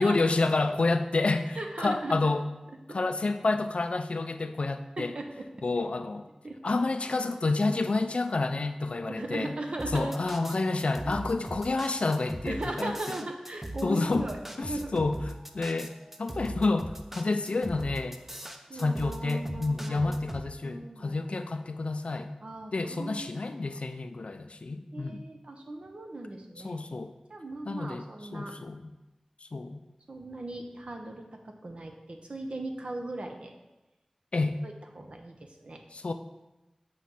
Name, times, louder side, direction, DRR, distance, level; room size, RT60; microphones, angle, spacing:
voice 1, 0.0-2.4 2.9-5.1 5.6-6.3 6.6-9.5 9.9-13.0 13.8-14.3 14.6-15.2 15.5-15.9 16.2-18.2 18.7-22.3 22.7-25.2 26.6-27.1 27.7-28.0 28.3-28.8 29.5-29.8 34.3-34.6 35.9-36.1, left 3 dB, 70° left, 8 dB, 0.4 m, -29 dB
voice 2, 1.6-2.3 2.9-3.0 5.0-5.5 6.4-6.6 9.1-10.2 11.0-11.1 12.5-14.4 14.7-14.9 18.7-20.1 20.6-21.2 22.4-23.8 24.9-26.8 27.3-28.5 30.1-33.5 34.6-35.8, right 2 dB, 65° right, 3 dB, 0.9 m, -38 dB
sound 1, 9.8-20.5, right 1 dB, 15° right, 0.6 m, -40 dB
7.4 x 3.1 x 5.6 m, 1.0 s
wide cardioid pair, 50°, 2 cm